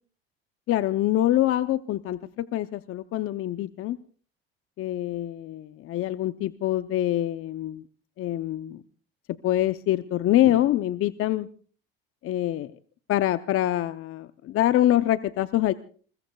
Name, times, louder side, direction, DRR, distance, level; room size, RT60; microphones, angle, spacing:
voice 1, 0.7-4.0 4.8-7.8 8.2-8.8 9.4-11.5 12.2-12.7 13.1-15.7, left 13 dB, 45° left, 12 dB, 0.7 m, -25 dB
28.5 x 21.5 x 2.3 m, 0.42 s
hypercardioid pair, 80°, 30 cm